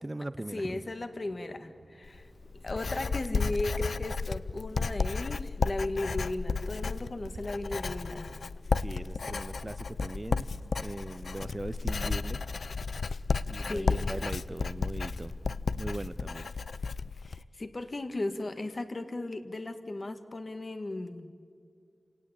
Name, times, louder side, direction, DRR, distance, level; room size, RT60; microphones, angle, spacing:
voice 1, 0.0-0.9 8.8-12.4 13.5-16.5, right 2 dB, 25° right, 14 dB, 0.5 m, -40 dB
voice 2, 0.5-2.3 2.6-8.3 13.7-14.1 17.2-21.3, left 2 dB, 45° left, 9 dB, 1.6 m, -36 dB
sound 1, 0.8-16.5, right 3 dB, 70° right, 1.1 m, -56 dB
Writing, 2.0-17.4, left 4 dB, 85° left, 0.5 m, -33 dB
28.5 x 18.0 x 8.8 m, 2.3 s
wide cardioid pair, 100°, 0 cm